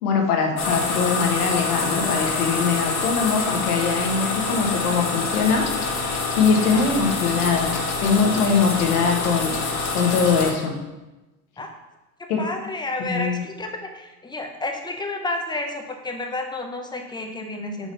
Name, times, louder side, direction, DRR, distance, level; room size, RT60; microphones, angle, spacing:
voice 1, 0.0-10.7 12.3-12.4 13.0-13.4, left 5 dB, 80° left, 2 dB, 1.4 m, -22 dB
sound 1, 0.6-10.5, left 4 dB, 35° left, 1.4 m, -26 dB
voice 2, 12.4-17.9, left 2 dB, 10° left, 4 dB, 0.8 m, -30 dB
4.9 x 3.8 x 5.3 m, 1.1 s
hypercardioid pair, 90°, 45 cm